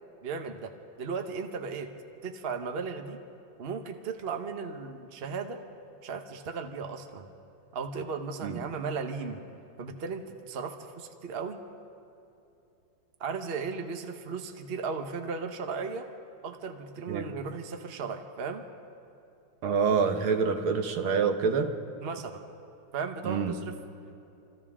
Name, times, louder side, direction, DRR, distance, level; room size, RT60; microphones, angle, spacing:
voice 1, 0.2-0.7 1.0-1.9 2.2-3.2 3.6-5.6 6.0-7.3 7.7-9.4 9.8-11.6 13.2-16.1 16.4-18.6 22.0-22.4 22.9-23.8, right 5 dB, 40° right, 5 dB, 1.0 m, -36 dB
voice 2, 19.6-21.7 23.2-23.5, right 5 dB, 75° right, 5 dB, 2.0 m, -26 dB
27.5 x 26.5 x 3.7 m, 2.7 s
omnidirectional pair, 2.3 m